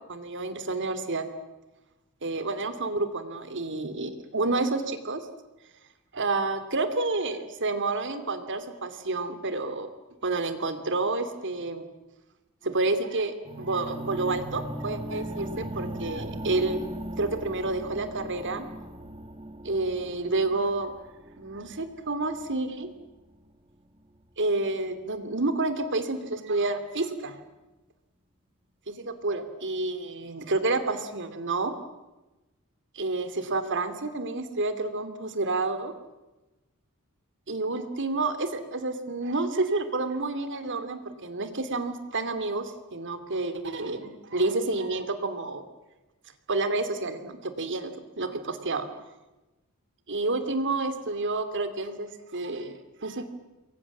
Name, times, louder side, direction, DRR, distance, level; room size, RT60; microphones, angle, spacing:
voice 1, 0.1-1.3 2.2-5.2 6.1-9.9 10.2-11.8 12.6-16.8 17.2-18.6 19.6-20.9 21.4-22.9 24.4-27.4 28.9-31.7 32.9-35.9 37.5-45.6 46.5-47.9 48.2-48.9 50.1-53.3, right 3 dB, 55° right, 10 dB, 2.7 m, -29 dB
sound 1, 13.4-23.4, right 1 dB, 25° right, 1.9 m, -39 dB
29.0 x 22.5 x 7.3 m, 1.0 s
head